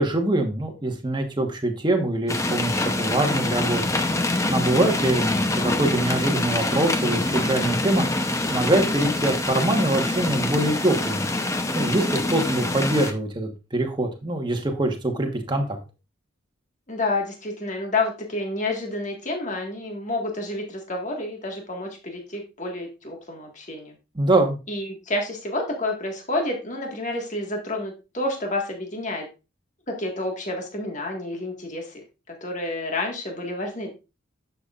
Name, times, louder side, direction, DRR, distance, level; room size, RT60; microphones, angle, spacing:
voice 1, 0.0-3.9 4.5-8.0 8.5-11.3 11.7-15.8 24.1-24.6, right 1 dB, 20° right, 4 dB, 1.2 m, -24 dB
sound 1, 2.3-13.1, left 2 dB, 15° left, 0.7 m, -25 dB
voice 2, 16.9-23.9 24.7-29.2 29.9-32.0 32.4-33.9, left 2 dB, 35° left, 2 dB, 1.7 m, -29 dB
10.5 x 7.0 x 2.4 m, 0.29 s
head